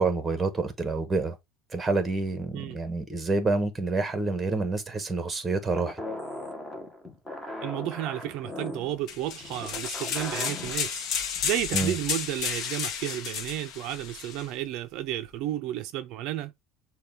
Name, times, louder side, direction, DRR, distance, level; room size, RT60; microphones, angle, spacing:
voice 1, 0.0-1.4 1.7-6.0 11.7-12.0, right 3 dB, 15° right, 1.1 m, -28 dB
sound 1, 5.8-10.9, left 1 dB, 5° left, 1.1 m, -38 dB
voice 2, 7.6-11.1 11.4-16.5, right 13 dB, 55° right, 0.5 m, -32 dB
sound 2, 9.1-14.5, left 7 dB, 45° left, 0.9 m, -32 dB
6.7 x 2.3 x 3.4 m
cardioid pair, 145°, 0 cm